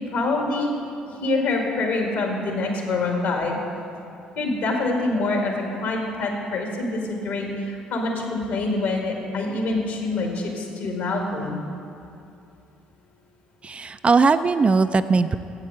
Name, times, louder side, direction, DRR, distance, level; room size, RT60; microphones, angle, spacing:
voice 1, 0.1-0.7 1.2-3.6 4.4-11.6, left 2 dB, 65° left, 1 dB, 2.0 m, -25 dB
voice 2, 13.6-15.4, right 4 dB, 30° right, 11 dB, 0.4 m, -19 dB
8.8 x 8.1 x 7.5 m, 2.7 s
figure-of-eight pair, 45°, 4 cm